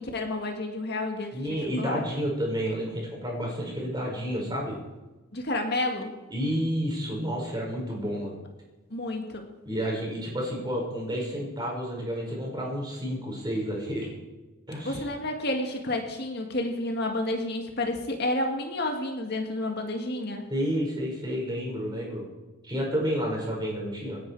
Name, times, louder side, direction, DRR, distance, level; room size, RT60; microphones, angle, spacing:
voice 1, 0.0-2.0 5.3-6.1 8.9-9.5 14.8-20.5, left 2 dB, 50° left, 3 dB, 2.0 m, -30 dB
voice 2, 1.3-4.8 6.3-8.4 9.7-14.1 14.7-15.1 20.5-22.2 22.6-24.2, equal, 20° right, -2 dB, 5.5 m, -30 dB
27.5 x 10.5 x 4.8 m, 1.1 s
head